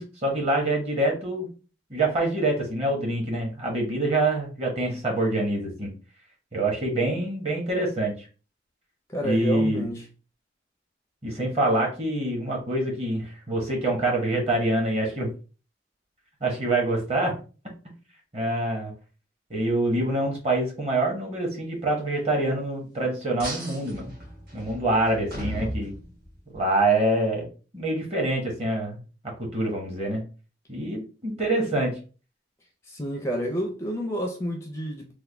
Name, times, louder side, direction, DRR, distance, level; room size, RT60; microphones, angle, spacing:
voice 1, 0.0-1.5 1.9-5.9 6.5-8.3 9.2-9.9 11.2-15.3 16.4-17.3 18.3-18.9 19.5-24.1 24.5-25.9 26.5-27.5 27.7-29.0 29.4-30.2 30.7-32.0, right 2 dB, 35° right, 1.1 m, -25 dB
voice 2, 9.1-10.1 32.8-35.1, right 1 dB, 15° left, 0.4 m, -30 dB
sound 1, 23.4-26.6, right 1 dB, 55° right, 1.5 m, -36 dB
3.4 x 2.2 x 3.2 m
head